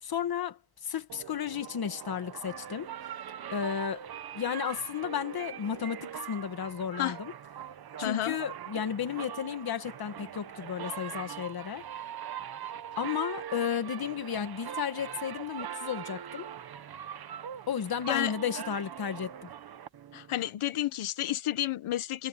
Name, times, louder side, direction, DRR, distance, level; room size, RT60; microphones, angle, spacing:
voice 1, 0.0-2.9 3.5-4.0 4.3-7.3 8.0-11.9 13.0-16.5 17.7-19.5, left 8 dB, 45° left, 1.9 m, -33 dB
sound 1, 1.1-20.5, right 9 dB, 50° right, 1.1 m, -42 dB
voice 2, 8.0-8.3 18.1-18.3 20.1-22.3, left 13 dB, 80° left, 1.3 m, -31 dB
wide cardioid pair, 170°, 49 cm